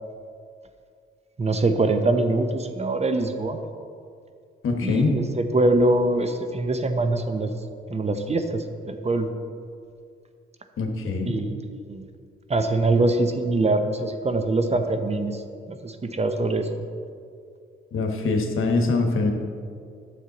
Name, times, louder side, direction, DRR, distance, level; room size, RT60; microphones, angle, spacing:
voice 1, 1.4-3.6 4.8-7.5 7.9-9.3 11.3-12.0 12.5-15.4 15.7-16.7, right 2 dB, 30° right, 7 dB, 0.7 m, -23 dB
voice 2, 4.6-5.1 10.8-11.3 17.9-19.3, left 3 dB, 75° left, 4 dB, 1.1 m, -23 dB
9.6 x 7.3 x 4.0 m, 2.3 s
cardioid pair, 85°, 21 cm